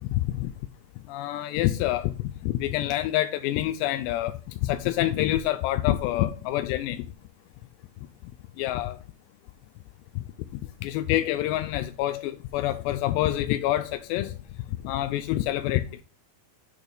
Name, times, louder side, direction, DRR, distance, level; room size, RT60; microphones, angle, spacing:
voice 1, 0.0-0.5 1.1-2.1 2.4-7.1 8.6-9.0 10.8-14.4 14.8-16.0, left 14 dB, 85° left, 2.4 m, -27 dB
8.7 x 6.2 x 3.4 m
omnidirectional pair, 5.4 m